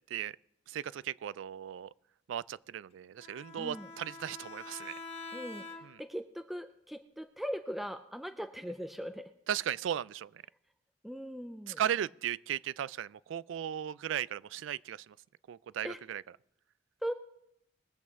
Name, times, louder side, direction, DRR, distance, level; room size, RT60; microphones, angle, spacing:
voice 1, 0.7-1.9 2.3-4.9 5.8-6.0 9.5-10.4 11.7-15.2 15.5-16.2, right 10 dB, 75° right, 0.3 m, -36 dB
Bowed string instrument, 3.2-6.2, left 3 dB, 30° left, 1.3 m, -46 dB
voice 2, 3.6-3.9 5.3-9.3 11.0-11.8 15.8-16.0 17.0-17.1, equal, ahead, 0.4 m, -40 dB
21.0 x 8.2 x 3.6 m
head